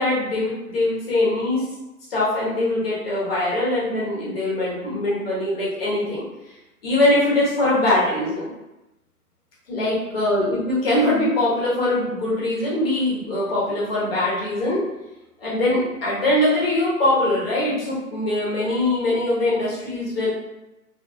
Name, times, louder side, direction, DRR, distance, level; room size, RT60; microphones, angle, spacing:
voice 1, 0.0-1.6 2.1-6.5 6.8-8.5 9.7-14.8 15.4-20.3, left 1 dB, 40° left, -6 dB, 1.3 m, -22 dB
3.4 x 3.2 x 2.4 m, 1.0 s
figure-of-eight pair, 135°, 46 cm